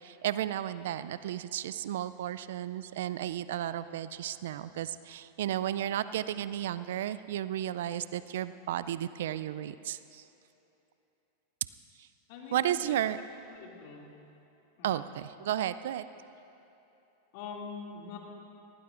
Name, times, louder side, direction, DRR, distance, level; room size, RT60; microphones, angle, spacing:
voice 1, 0.0-10.2 12.5-13.2 14.8-16.0, right 11 dB, 70° right, 15 dB, 0.4 m, -33 dB
voice 2, 12.3-13.0 13.5-14.0 14.8-15.0 17.3-18.2, left 5 dB, 55° left, -1 dB, 2.6 m, -43 dB
19.0 x 17.0 x 2.6 m, 3.0 s
hypercardioid pair, 95°, 0 cm